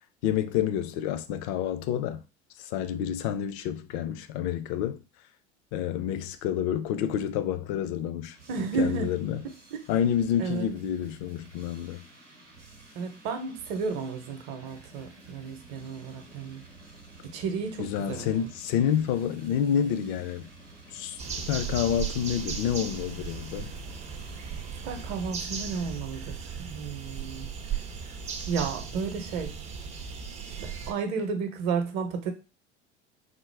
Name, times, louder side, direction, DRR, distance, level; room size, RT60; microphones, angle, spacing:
voice 1, 0.2-2.2 2.6-5.0 5.7-8.4 8.8-9.4 9.9-12.1 17.8-20.5 20.9-21.2 21.5-23.7, left 9 dB, 45° left, 0.4 m, -28 dB
sound 1, 8.3-25.3, right 2 dB, 90° right, 0.8 m, -52 dB
voice 2, 8.5-9.1 9.7-9.8 10.4-10.7 13.0-16.6 17.2-18.5 24.8-27.5 28.5-29.6 30.6-32.3, right 5 dB, 50° right, 0.8 m, -32 dB
sound 2, 21.2-30.9, right 6 dB, 20° right, 0.4 m, -36 dB
3.6 x 2.0 x 3.2 m
figure-of-eight pair, 70°, 35 cm